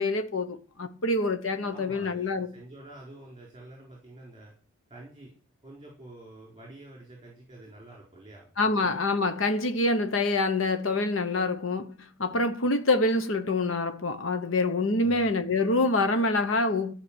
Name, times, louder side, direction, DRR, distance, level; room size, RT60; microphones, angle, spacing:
voice 1, 0.0-2.5 8.6-16.9, left 2 dB, 75° left, 1.1 m, -26 dB
voice 2, 1.7-4.5 4.9-5.3 5.6-8.5 15.0-15.4, right 1 dB, 25° right, 4.2 m, -48 dB
14.0 x 5.9 x 8.8 m
head